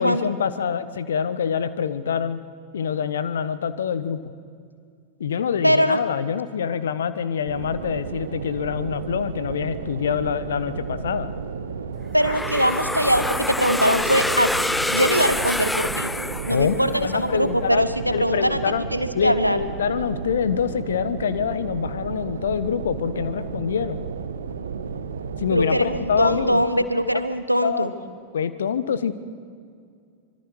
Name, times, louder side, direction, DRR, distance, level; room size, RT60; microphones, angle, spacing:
voice 1, 0.0-2.4 2.7-4.2 5.2-11.3 16.5-17.8 18.1-18.8 19.1-24.0 25.4-26.9 27.1-27.2 27.6-27.9 28.3-29.1, left 7 dB, 65° left, 14 dB, 1.1 m, -25 dB
voice 2, 5.6-6.0 12.1-16.1 16.5-18.6 18.9-19.6 25.5-27.9, equal, 90° right, 11 dB, 1.1 m, -22 dB
sound 1, 7.5-26.5, right 6 dB, 70° right, 1.2 m, -33 dB
sound 2, 12.2-17.1, left 2 dB, 5° left, 0.4 m, -26 dB
25.0 x 23.5 x 4.8 m, 2.2 s
figure-of-eight pair, 90°, 0 cm